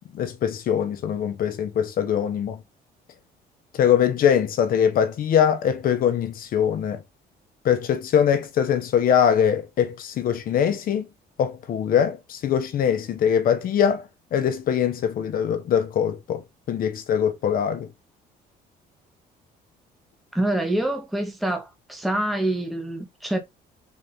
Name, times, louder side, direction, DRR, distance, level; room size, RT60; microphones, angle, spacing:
voice 1, 0.1-2.6 3.7-7.0 7.6-11.1 11.4-14.0 14.3-17.9, left 8 dB, 60° left, 1.0 m, -22 dB
voice 2, 20.3-23.4, right 1 dB, ahead, 1.0 m, -26 dB
4.1 x 2.8 x 3.4 m
cardioid pair, 110°, 17 cm